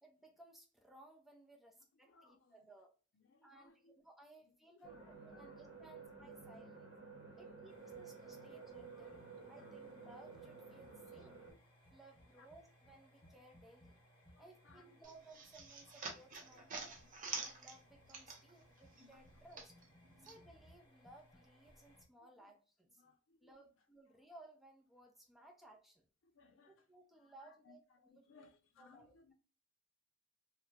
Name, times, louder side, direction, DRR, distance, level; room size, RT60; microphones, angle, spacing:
voice 1, 0.0-2.9 3.4-6.9 7.3-9.1 9.5-11.4 11.9-14.0 14.4-17.0 17.4-19.8 20.2-23.0 23.4-26.0 26.7-28.4 28.8-29.3, right 2 dB, ahead, 0.5 m, -61 dB
voice 2, 2.0-2.5 3.1-3.9 4.7-5.6 6.0-6.1 7.3-7.6 8.5-8.6 8.9-9.2 9.6-9.7 11.1-11.6 12.4-12.5 13.2-13.3 14.3-14.8 22.4-22.5 23.0-23.6 26.2-26.8 27.2-29.3, left 4 dB, 85° left, 0.5 m, -66 dB
sound 1, 4.8-11.5, right 4 dB, 70° right, 0.8 m, -53 dB
sound 2, 7.7-22.0, equal, 25° left, 1.0 m, -66 dB
sound 3, 15.0-18.7 19.0-20.4, right 4 dB, 40° right, 0.6 m, -47 dB
2.9 x 2.1 x 2.2 m
head